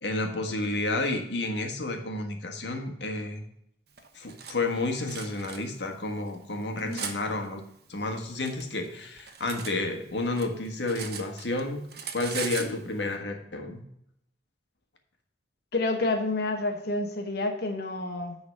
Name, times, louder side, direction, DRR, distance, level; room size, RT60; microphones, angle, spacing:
voice 1, 0.0-3.4 4.1-7.6 7.9-11.9 12.1-13.8, left 2 dB, 80° left, 4 dB, 1.6 m, -31 dB
Cutlery silverware, 4.0-4.5 5.1-5.6 6.3-7.2 8.0-9.8 10.1-11.6 11.9-12.7, right 7 dB, 60° right, 1.1 m, -38 dB
voice 2, 15.7-18.4, left 2 dB, 60° left, 4 dB, 1.1 m, -29 dB
9.8 x 4.0 x 6.4 m, 0.76 s
head